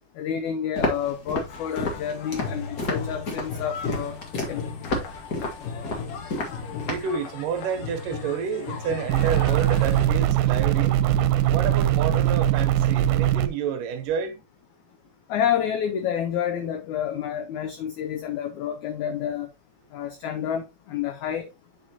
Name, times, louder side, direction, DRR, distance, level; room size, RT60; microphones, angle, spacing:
voice 1, 0.2-4.2 4.5-4.7 15.3-19.5 19.9-21.5, left 9 dB, 90° left, 1.6 m, -29 dB
Walk footsteps, 0.7-7.1, left 2 dB, 45° left, 1.3 m, -31 dB
sound 1, 1.5-10.1, left 6 dB, 70° left, 2.6 m, -36 dB
voice 2, 6.9-11.0 11.5-14.4, right 7 dB, 70° right, 2.5 m, -29 dB
sound 2, 9.1-13.5, right 12 dB, 85° right, 2.4 m, -21 dB
8.8 x 4.9 x 2.7 m
omnidirectional pair, 4.2 m